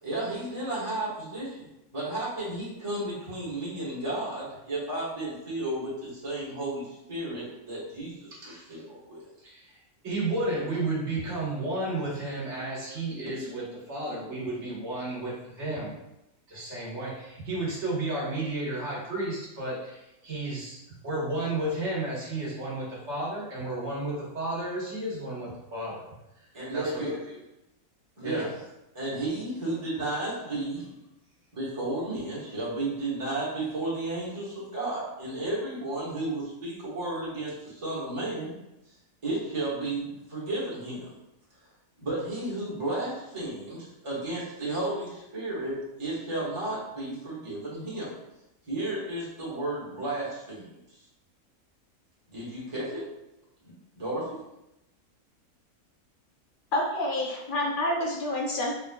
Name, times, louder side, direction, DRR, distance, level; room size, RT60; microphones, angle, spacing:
voice 1, 0.0-9.2 26.5-27.2 28.2-28.4 28.9-30.8 31.5-38.5 39.2-41.1 42.0-48.1 48.7-50.7 52.3-53.0 53.6-54.3, right 2 dB, 20° right, -8 dB, 1.4 m, -33 dB
voice 2, 10.0-15.9 16.5-20.8 21.0-26.0 26.7-27.4 28.2-28.5 30.4-30.6, right 2 dB, 50° right, -6 dB, 1.5 m, -32 dB
voice 3, 56.7-58.8, left 1 dB, 70° left, -1 dB, 0.5 m, -28 dB
3.9 x 3.4 x 2.3 m, 0.90 s
omnidirectional pair, 1.5 m